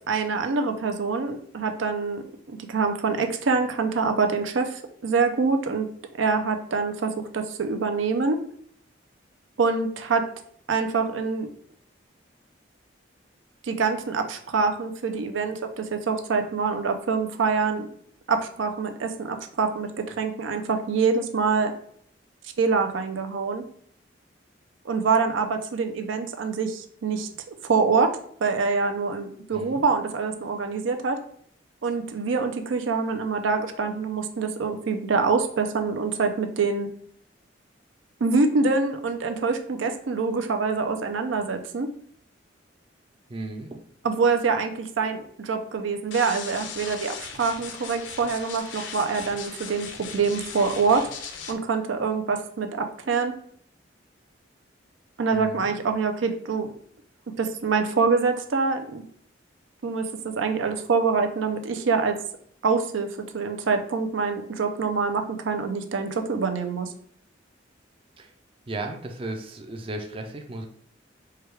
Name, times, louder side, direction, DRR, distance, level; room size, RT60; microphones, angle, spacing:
voice 1, 0.1-2.2 2.5-5.9 6.2-8.4 9.6-10.3 10.7-11.5 13.6-17.9 18.3-21.7 22.6-23.6 24.9-27.3 27.6-31.2 31.8-36.9 38.2-41.9 44.0-51.1 51.5-53.3 55.2-56.7 57.4-59.0 59.8-62.2 62.6-66.9, right 4 dB, 90° right, 6 dB, 0.5 m, -25 dB
voice 2, 29.5-29.8 43.3-43.8 55.3-55.7 68.2-68.3 68.7-70.6, right 2 dB, 30° right, 4 dB, 0.4 m, -35 dB
sound 1, 46.1-51.5, left 6 dB, 75° left, 0.6 m, -38 dB
4.7 x 2.3 x 3.3 m, 0.63 s
head